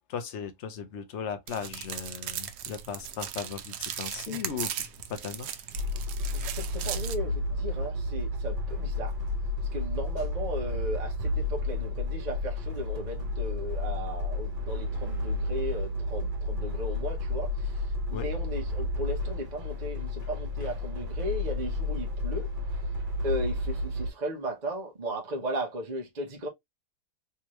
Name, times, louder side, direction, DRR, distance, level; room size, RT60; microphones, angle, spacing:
voice 1, 0.1-5.5 18.1-18.3, left 7 dB, 55° left, 0.8 m, -37 dB
sound 1, 1.5-7.1, right 10 dB, 75° right, 1.1 m, -37 dB
sound 2, 5.7-24.1, left 2 dB, 55° right, 1.9 m, -31 dB
voice 2, 6.3-9.2 9.7-22.5 23.2-26.5, equal, 30° right, 1.0 m, -36 dB
3.5 x 3.1 x 3.0 m
omnidirectional pair, 1.9 m